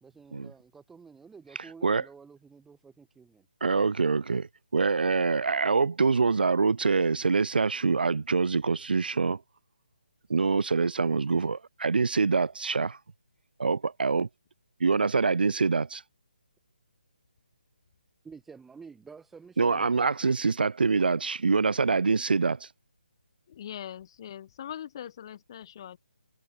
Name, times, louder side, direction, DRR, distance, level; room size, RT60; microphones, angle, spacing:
voice 1, 0.0-3.5 18.2-20.3, right 5 dB, 5° right, 0.7 m, -50 dB
voice 2, 3.6-9.4 10.3-13.0 13.6-14.3 14.8-16.0 19.6-22.7, right 4 dB, 85° right, 0.5 m, -25 dB
voice 3, 23.5-26.0, left 10 dB, 30° left, 2.6 m, -41 dB
hypercardioid pair, 170°, 5 cm